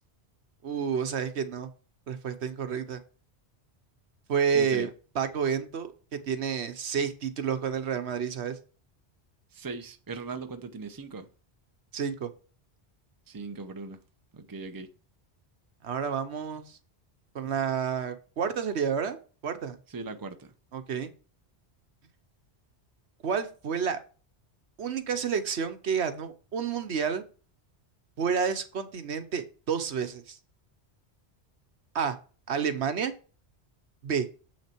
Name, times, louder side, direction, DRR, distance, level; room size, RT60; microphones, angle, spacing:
voice 1, 0.6-1.7 2.1-3.0 4.3-4.9 5.1-5.9 6.3-8.6 11.9-12.3 15.8-16.8 17.3-19.2 19.4-19.8 20.7-21.1 23.2-24.0 24.8-27.2 28.2-30.4 31.9-32.2 32.5-33.1 34.0-34.3, right 7 dB, 80° right, 1.2 m, -29 dB
voice 2, 4.5-4.9 9.5-11.3 13.3-14.0 14.3-14.9 19.9-20.5, right 4 dB, 20° right, 0.7 m, -39 dB
7.5 x 6.3 x 4.5 m
omnidirectional pair, 1.1 m